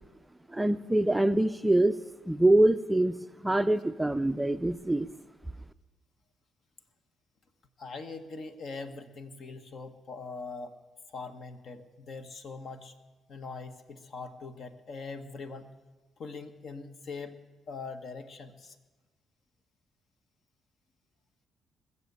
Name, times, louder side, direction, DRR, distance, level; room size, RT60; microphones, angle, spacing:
voice 1, 0.5-2.0 2.3-3.2 3.4-5.1, right 1 dB, 10° right, 10 dB, 0.4 m, -24 dB
voice 2, 7.8-10.7 11.1-12.9 13.3-15.7 16.2-17.4 17.7-18.7, left 4 dB, 60° left, 7 dB, 1.2 m, -42 dB
20.0 x 7.0 x 8.3 m, 1.2 s
cardioid pair, 90°, 0 cm